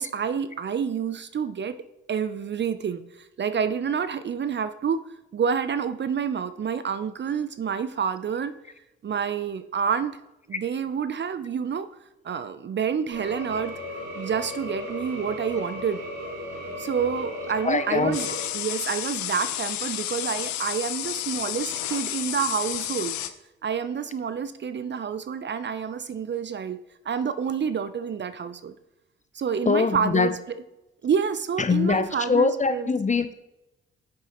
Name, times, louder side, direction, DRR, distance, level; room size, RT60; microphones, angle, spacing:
voice 1, 0.0-1.8 2.1-3.0 3.4-5.0 5.3-8.5 9.0-10.1 10.5-11.9 12.2-13.7 14.2-16.0 16.8-18.3 18.5-23.2 23.6-26.8 27.1-28.8 29.3-30.6 31.0-32.9, right 7 dB, 40° right, 13 dB, 0.6 m, -28 dB
sound 1, 13.1-18.5, left 1 dB, 70° right, 2.5 m, -36 dB
voice 2, 17.6-18.2 29.7-30.3 31.6-33.3, left 4 dB, 25° left, 11 dB, 0.7 m, -23 dB
sound 2, 18.1-23.3, left 13 dB, 75° left, 0.6 m, -31 dB
8.8 x 7.1 x 3.0 m, 0.94 s
hypercardioid pair, 45°, 29 cm